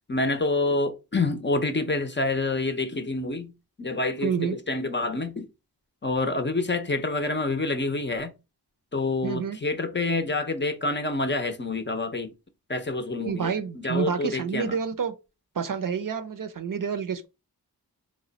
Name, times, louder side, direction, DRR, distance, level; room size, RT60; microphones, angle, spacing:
voice 1, 0.1-3.5 3.8-5.5 6.0-8.3 8.9-12.3 12.7-14.8, left 2 dB, 30° left, 0.6 m, -27 dB
voice 2, 4.2-4.6 9.2-9.6 13.3-15.1 15.5-17.3, right 6 dB, 55° right, 0.6 m, -28 dB
3.1 x 2.2 x 3.9 m
wide cardioid pair, 60°, 39 cm